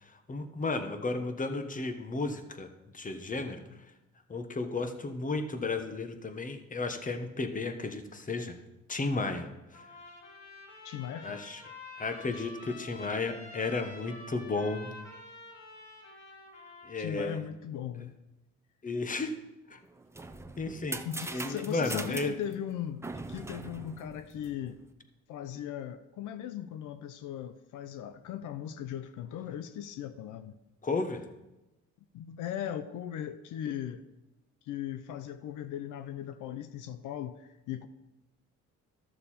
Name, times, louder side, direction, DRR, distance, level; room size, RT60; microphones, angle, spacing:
voice 1, 0.3-2.7 2.9-3.6 4.3-8.5 8.9-9.8 11.2-11.6 12.0-14.9 16.8-17.4 18.8-19.3 19.7-19.8 20.6-21.0 21.3-22.4 30.8-31.2, left 3 dB, 25° left, 1.1 m, -33 dB
Trumpet, 9.7-17.3, left 2 dB, 65° left, 2.7 m, -48 dB
voice 2, 10.8-11.4 12.3-12.5 17.0-18.1 21.0-24.8 25.3-30.5 32.1-34.0 34.6-37.9, left 10 dB, 85° left, 0.6 m, -38 dB
sound 1, 19.8-24.9, right 2 dB, 10° right, 0.6 m, -42 dB
13.5 x 6.7 x 4.3 m
cardioid pair, 90°, 30 cm